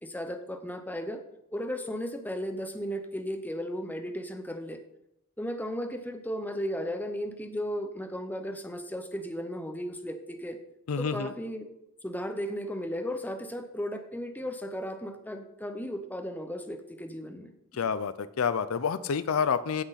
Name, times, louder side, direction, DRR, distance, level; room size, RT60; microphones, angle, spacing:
voice 1, 0.0-1.2 1.5-4.8 5.4-10.6 11.0-11.7 12.0-17.5, equal, 10° left, 7 dB, 0.8 m, -35 dB
voice 2, 10.9-11.3 17.7-19.8, left 6 dB, 80° left, 14 dB, 0.5 m, -28 dB
16.0 x 6.1 x 4.1 m, 0.80 s
head